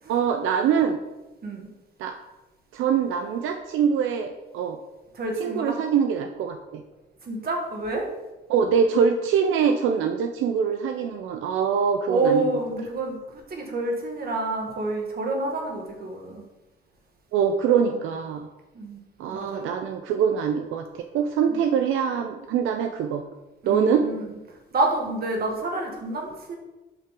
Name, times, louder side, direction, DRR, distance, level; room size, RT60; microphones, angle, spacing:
voice 1, 0.1-1.0 2.0-2.2 2.7-4.8 5.4-6.8 8.5-12.5 17.3-18.5 19.2-20.9 21.1-23.2 23.7-24.1, right 7 dB, 90° right, 6 dB, 0.6 m, -24 dB
voice 2, 5.1-5.8 7.2-8.1 12.1-16.4 17.9-18.0 18.7-19.0 19.3-19.7 21.5-21.6 23.6-26.6, right 2 dB, 50° right, 1 dB, 1.9 m, -28 dB
7.9 x 5.7 x 3.8 m, 1.0 s
cardioid pair, 90°, 20 cm